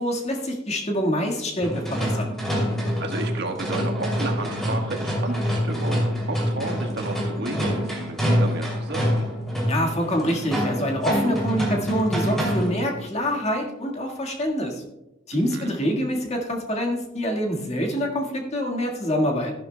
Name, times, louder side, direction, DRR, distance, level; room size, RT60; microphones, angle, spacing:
voice 1, 0.0-2.3 9.7-14.8 15.3-19.5, equal, 35° left, 1 dB, 1.7 m, -26 dB
sound 1, 1.6-12.9, equal, ahead, 2.8 m, -26 dB
voice 2, 3.0-6.0 6.3-9.3 15.3-15.7, right 2 dB, 60° right, 3 dB, 1.4 m, -32 dB
14.0 x 11.5 x 2.3 m, 0.92 s
head